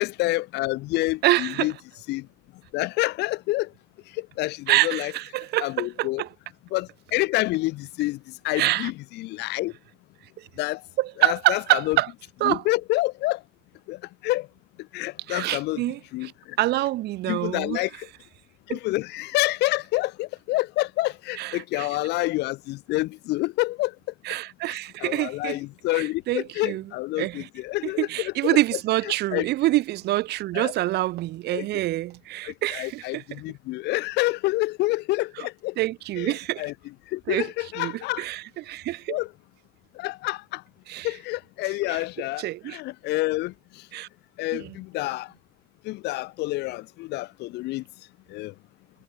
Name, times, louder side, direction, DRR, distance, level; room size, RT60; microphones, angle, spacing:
voice 1, 0.0-1.7 2.1-2.3 2.7-3.7 4.2-5.1 5.6-6.2 6.7-8.2 8.4-9.7 10.6-10.8 11.2-12.0 12.4-13.4 13.9-14.5 14.9-15.8 16.1-16.3 17.3-18.1 18.7-23.9 25.0-28.6 29.3-29.5 30.5-30.7 31.5-31.7 32.4-35.7 36.2-36.7 37.1-38.2 39.1-39.3 40.0-40.6 41.0-43.5 44.4-45.3 45.8-47.8 48.3-48.5, left 19 dB, 85° left, 1.5 m, -28 dB
voice 2, 1.2-1.7 4.7-6.3 8.5-8.9 10.4-10.5 11.0-12.1 12.4-12.6 15.3-16.3 16.6-17.9 18.7-18.8 21.3-21.9 24.2-25.6 25.9-26.9 27.2-27.5 27.8-33.4 35.4-35.5 35.8-36.7 37.3-37.5 37.8-39.2 40.9-41.1 41.9-42.0 42.4-42.8 43.9-44.1 44.5-44.8, right 16 dB, 75° right, 1.8 m, -26 dB
cardioid pair, 110°, 17 cm